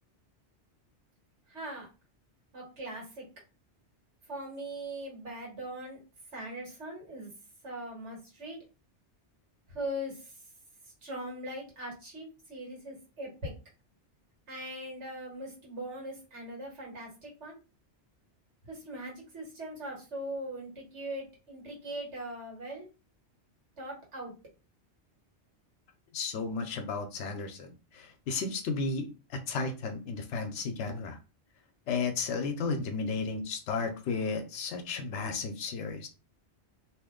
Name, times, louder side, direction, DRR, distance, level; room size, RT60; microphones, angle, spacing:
voice 1, 1.5-1.9 2.5-3.3 4.3-6.0 6.3-7.3 7.6-8.6 9.7-10.4 10.8-13.5 14.5-17.6 18.6-22.9 23.8-24.3, right 1 dB, 80° right, -1 dB, 1.8 m, -40 dB
voice 2, 26.1-31.2 31.9-36.1, left 4 dB, 90° left, 5 dB, 0.9 m, -33 dB
2.8 x 2.7 x 3.6 m, 0.31 s
omnidirectional pair, 1.2 m